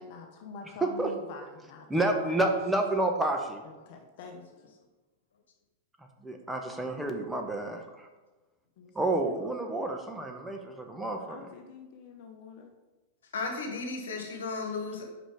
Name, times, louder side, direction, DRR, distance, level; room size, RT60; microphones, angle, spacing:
voice 1, 0.0-1.9 2.2-2.4 3.6-4.7 8.8-9.4 11.3-12.7, left 4 dB, 55° left, 3 dB, 0.8 m, -46 dB
voice 2, 0.8-1.1 1.9-3.6 6.2-7.8 9.0-11.4, right 2 dB, 10° right, 3 dB, 0.9 m, -29 dB
voice 3, 13.3-15.0, left 3 dB, 75° left, 3 dB, 1.3 m, -34 dB
5.9 x 5.1 x 5.0 m, 1.2 s
figure-of-eight pair, 95°, 0 cm